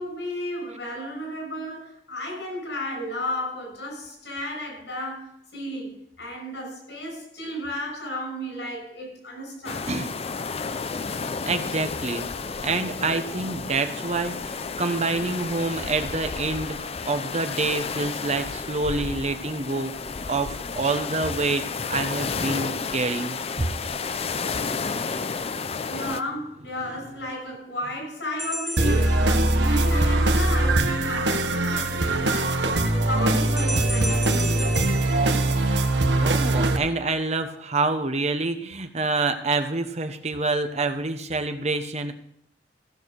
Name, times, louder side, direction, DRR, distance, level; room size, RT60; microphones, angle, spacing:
voice 1, 0.0-9.9 25.9-34.5, left 1 dB, 85° left, 6.0 m, -33 dB
sound 1, 9.7-26.2, left 5 dB, 35° left, 0.5 m, -31 dB
voice 2, 11.4-12.3 12.6-19.9 20.3-21.6 21.9-23.7 36.2-42.1, right 3 dB, 40° right, 1.0 m, -27 dB
sound 2, 28.4-29.9 33.6-36.1, right 1 dB, ahead, 0.7 m, -34 dB
sound 3, 28.8-36.8, right 2 dB, 85° right, 1.2 m, -22 dB
15.5 x 7.1 x 6.5 m
head